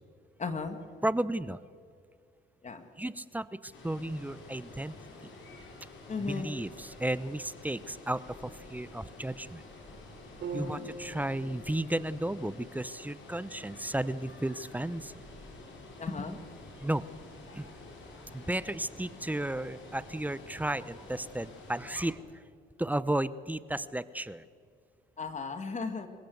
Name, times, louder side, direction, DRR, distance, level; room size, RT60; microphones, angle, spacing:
voice 1, 0.4-0.8 2.6-2.8 6.1-6.5 10.5-10.9 16.0-16.4 25.2-26.1, left 4 dB, 35° left, 7 dB, 2.0 m, -35 dB
voice 2, 1.0-1.6 3.0-4.9 5.2-5.3 6.2-9.6 10.5-15.1 16.8-17.0 17.5-17.7 18.3-22.2 22.8-24.4, right 1 dB, 10° right, 16 dB, 0.8 m, -33 dB
Water, 3.7-22.1, left 2 dB, 70° left, 6.0 m, -49 dB
sound 1, 10.4-14.5, right 2 dB, 65° right, 6.1 m, -45 dB
26.0 x 16.5 x 8.0 m, 2.2 s
cardioid pair, 90°, 20 cm